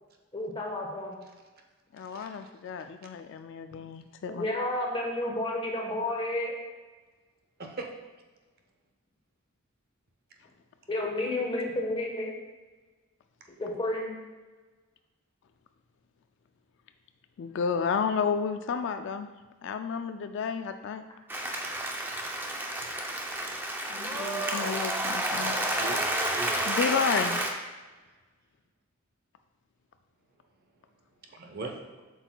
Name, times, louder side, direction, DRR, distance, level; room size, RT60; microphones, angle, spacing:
voice 1, 0.3-1.1 4.3-6.6 10.9-12.3 13.6-14.1, left 1 dB, 25° left, -1 dB, 1.2 m, -31 dB
voice 2, 1.9-4.5 17.4-19.3 19.6-21.0 23.9-25.5 26.6-27.4, left 6 dB, 60° left, 9 dB, 0.3 m, -31 dB
Applause, 21.3-27.5, right 1 dB, 10° right, 0.5 m, -30 dB
voice 3, 25.3-26.6 31.4-32.0, right 3 dB, 45° right, 2 dB, 0.7 m, -40 dB
7.7 x 6.3 x 2.3 m, 1.3 s
head